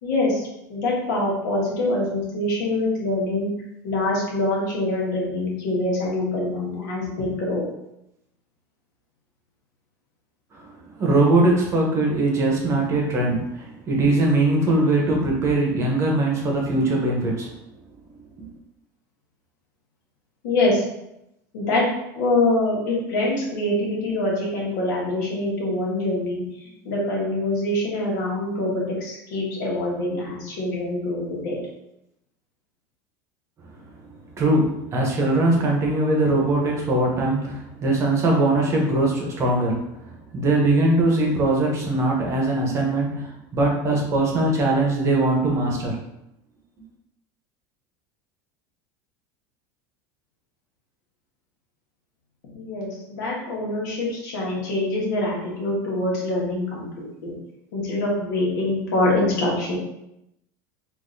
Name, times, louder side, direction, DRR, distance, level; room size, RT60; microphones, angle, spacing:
voice 1, 0.0-3.5 3.8-7.6 20.4-20.8 21.5-21.8 22.1-26.4 26.8-31.6 52.5-57.3 57.7-59.8, left 2 dB, 85° left, -4 dB, 1.4 m, -24 dB
voice 2, 10.5-17.5 18.4-18.5 34.0-39.8 40.3-46.0, right 2 dB, 30° right, -1 dB, 0.8 m, -21 dB
3.7 x 2.7 x 2.6 m, 0.84 s
supercardioid pair, 140°, 10 cm